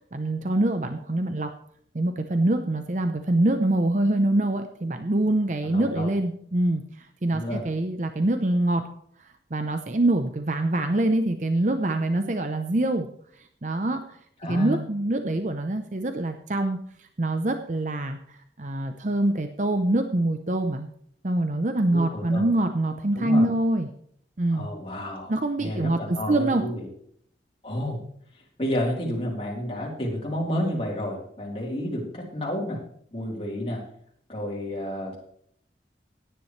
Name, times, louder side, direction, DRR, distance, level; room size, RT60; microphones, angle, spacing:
voice 1, 0.1-1.5 1.9-8.9 9.5-13.1 13.6-20.9 21.2-23.9 24.4-24.7 25.3-26.6, right 1 dB, 45° right, 7 dB, 0.7 m, -25 dB
voice 2, 5.6-6.1 7.3-7.6 14.4-14.8 21.9-22.5 23.1-23.5 24.5-26.9 27.6-28.0 28.6-32.8 33.1-33.8 34.3-35.3, left 1 dB, 30° left, -2 dB, 3.5 m, -30 dB
16.5 x 10.0 x 3.2 m, 0.65 s
head